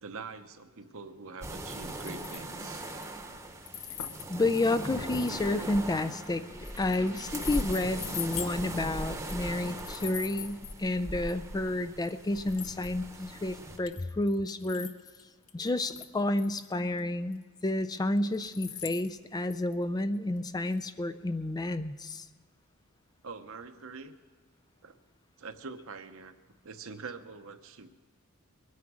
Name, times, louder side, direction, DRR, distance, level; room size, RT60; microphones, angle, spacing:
voice 1, 0.0-2.9 23.2-24.1 24.8-25.0 25.4-26.4 26.6-27.9, right 4 dB, 65° right, 9 dB, 0.9 m, -44 dB
sound 1, 1.4-13.8, right 1 dB, 15° right, 1.0 m, -40 dB
sound 2, 1.7-2.5 2.8-3.2 3.7-6.3 6.6-8.5 9.2-10.8 11.2-11.3 12.0-12.1 12.4-13.2 13.8-15.2 15.5-16.7 17.0-17.1 17.3-17.4 18.2-19.9 20.1-20.2 20.7-20.8, left 9 dB, 65° left, 0.9 m, -42 dB
voice 2, 4.3-14.9 15.5-22.3, left 2 dB, 15° left, 12 dB, 0.4 m, -30 dB
22.0 x 9.5 x 6.2 m, 1.5 s
head